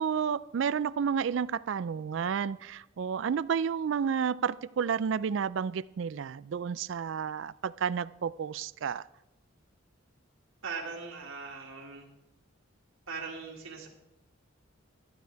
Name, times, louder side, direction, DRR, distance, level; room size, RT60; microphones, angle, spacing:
voice 1, 0.0-9.0, right 7 dB, 65° right, 18 dB, 0.4 m, -31 dB
voice 2, 10.6-12.1 13.1-13.9, right 5 dB, 85° right, -2 dB, 1.9 m, -40 dB
12.0 x 11.5 x 4.6 m, 0.92 s
head